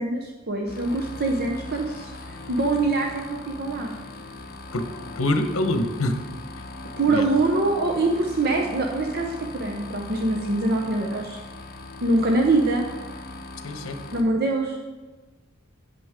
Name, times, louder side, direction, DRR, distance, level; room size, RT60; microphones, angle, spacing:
voice 1, 0.0-3.9 7.0-11.4 12.0-12.9 14.1-14.8, right 2 dB, 50° right, 1 dB, 0.8 m, -24 dB
sound 1, 0.7-14.2, left 2 dB, 45° left, 0.9 m, -39 dB
voice 2, 5.2-6.2 7.1-7.2 13.6-14.0, left 1 dB, 85° left, 7 dB, 0.9 m, -24 dB
9.4 x 8.5 x 3.6 m, 1.2 s
head